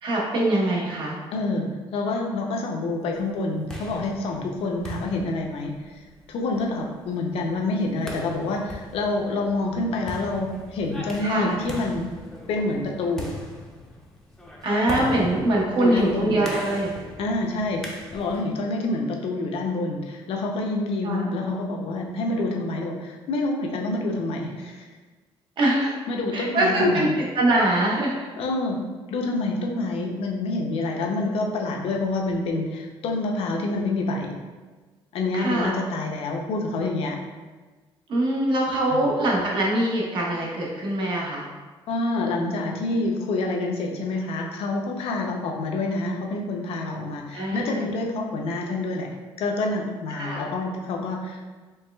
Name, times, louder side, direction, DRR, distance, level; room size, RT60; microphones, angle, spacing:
voice 1, 0.0-1.2 11.2-11.5 14.6-16.9 21.0-21.2 25.6-25.9 26.3-27.1 27.3-28.1 35.3-35.7 38.1-41.4 47.3-47.9 50.1-50.4, right 1 dB, 55° right, -3 dB, 0.9 m, -23 dB
voice 2, 1.3-5.7 6.3-12.1 12.5-13.3 15.8-16.4 17.2-24.9 26.1-27.1 28.4-34.4 35.1-37.2 38.9-39.1 41.9-49.1 49.4-51.5, left 2 dB, 75° left, 1 dB, 0.6 m, -27 dB
sound 1, 3.3-18.5, left 1 dB, 5° left, 0.5 m, -38 dB
4.5 x 3.1 x 2.2 m, 1.3 s
cardioid pair, 140°, 10 cm